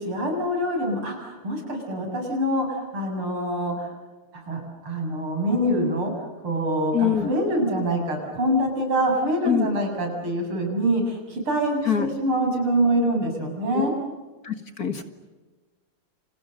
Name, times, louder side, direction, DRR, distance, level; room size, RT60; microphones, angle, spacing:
voice 1, 0.0-3.9 4.3-6.1 6.4-13.9, right 1 dB, 75° right, 2 dB, 8.2 m, -25 dB
voice 2, 6.9-7.3 9.5-9.7 11.9-12.1 13.7-13.9 14.4-15.0, left 9 dB, 45° left, 8 dB, 2.2 m, -24 dB
30.0 x 29.5 x 6.6 m, 1.3 s
omnidirectional pair, 2.4 m